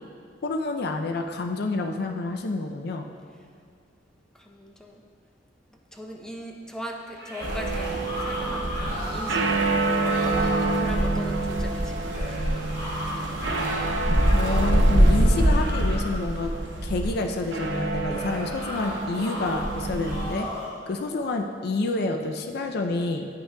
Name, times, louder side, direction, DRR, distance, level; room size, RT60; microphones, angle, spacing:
voice 1, 0.4-3.1 14.3-16.5 16.8-20.5 20.9-23.3, left 2 dB, 60° left, 4 dB, 0.4 m, -28 dB
voice 2, 4.4-5.0 5.9-12.4, equal, 5° left, 0 dB, 0.5 m, -39 dB
sound 1, 7.1-9.5 9.8-10.7 12.1-14.8 15.2-16.2 18.1-19.6 20.0-20.8, left 1 dB, 35° left, 1.6 m, -35 dB
sound 2, 7.4-20.3, right 1 dB, 85° right, 0.7 m, -25 dB
9.7 x 5.6 x 2.2 m, 2.4 s
head